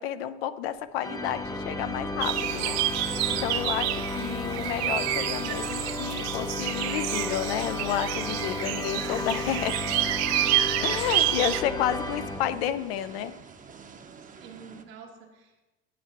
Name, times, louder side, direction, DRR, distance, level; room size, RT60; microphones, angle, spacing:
voice 1, 0.0-2.8 3.0-9.8 10.8-13.3, left 10 dB, 85° left, 13 dB, 0.6 m, -31 dB
sound 1, 0.8-14.9, right 5 dB, 25° right, 0.7 m, -49 dB
sound 2, 1.0-12.9, left 2 dB, 10° left, 0.7 m, -33 dB
sound 3, 2.2-11.6, right 14 dB, 60° right, 0.5 m, -29 dB
voice 2, 10.4-11.0 14.2-15.7, right 6 dB, 80° right, 0 dB, 1.6 m, -47 dB
9.3 x 7.8 x 3.0 m, 1.1 s
hypercardioid pair, 80°, 30 cm